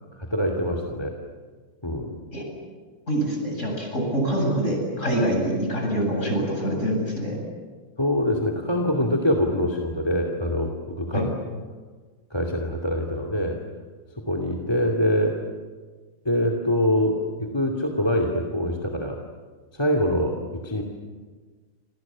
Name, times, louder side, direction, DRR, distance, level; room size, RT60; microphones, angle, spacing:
voice 1, 0.2-1.2 1.8-2.1 8.0-11.3 12.3-13.6 14.2-15.4 16.2-19.2 19.7-20.8, left 1 dB, 10° left, 3 dB, 2.4 m, -24 dB
voice 2, 3.1-7.4 11.1-11.3, right 1 dB, 30° left, 1 dB, 8.5 m, -25 dB
29.5 x 27.0 x 7.4 m, 1.4 s
omnidirectional pair, 2.4 m